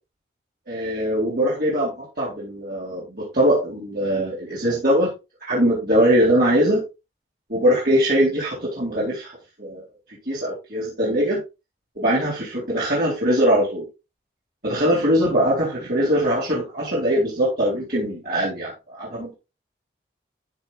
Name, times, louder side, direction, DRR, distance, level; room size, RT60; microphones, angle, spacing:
voice 1, 0.7-5.1 5.4-6.8 7.5-9.3 9.6-9.8 10.3-11.4 12.0-13.8 14.6-19.3, equal, 55° right, -6 dB, 3.9 m, -21 dB
13.5 x 6.2 x 2.5 m, 0.27 s
head